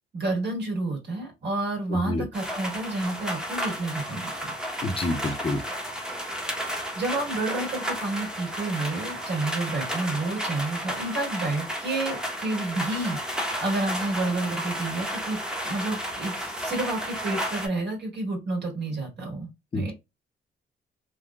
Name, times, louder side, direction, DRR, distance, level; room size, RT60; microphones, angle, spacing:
voice 1, 0.1-4.5 6.4-15.4 15.6-19.9, right 2 dB, 60° right, 1.8 m, -30 dB
voice 2, 1.9-2.3 4.8-5.6 19.7-19.9, left 2 dB, 30° left, 0.7 m, -28 dB
sound 1, 2.3-17.7, equal, 5° right, 0.8 m, -32 dB
3.7 x 2.2 x 2.2 m
cardioid pair, 90°, 20 cm